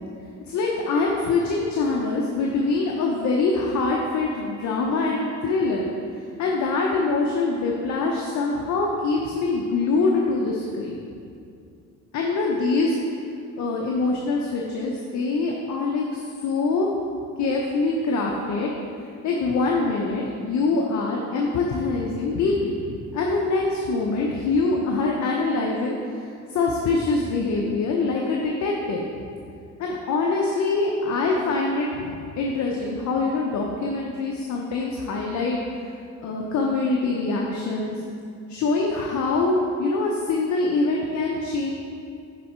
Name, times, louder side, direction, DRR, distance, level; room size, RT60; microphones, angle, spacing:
voice 1, 0.5-5.9 6.4-11.0 12.1-13.0 13.6-16.9 17.4-18.7 19.2-29.0 29.8-35.6 36.2-37.9 38.5-41.7, left 3 dB, 70° left, -1 dB, 0.7 m, -24 dB
6.9 x 3.8 x 4.3 m, 2.4 s
cardioid pair, 90°, 30 cm